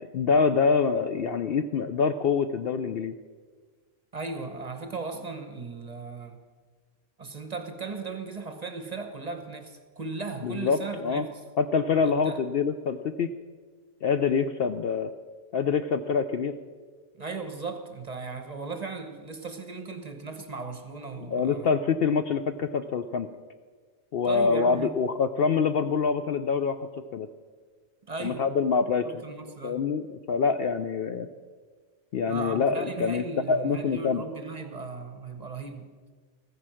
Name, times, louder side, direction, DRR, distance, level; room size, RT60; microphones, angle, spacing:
voice 1, 0.0-3.1 10.4-11.3 11.6-13.3 14.0-15.1 15.5-16.6 21.3-23.3 24.1-27.3 28.2-29.2 29.6-31.3 32.1-34.2, left 5 dB, 60° left, 9 dB, 0.7 m, -25 dB
voice 2, 4.1-6.4 7.2-11.4 12.2-12.4 17.1-21.7 24.2-24.9 28.1-28.5 29.0-29.8 32.3-35.9, right 4 dB, 35° right, 7 dB, 1.0 m, -37 dB
14.5 x 10.0 x 6.3 m, 1.5 s
omnidirectional pair, 1.3 m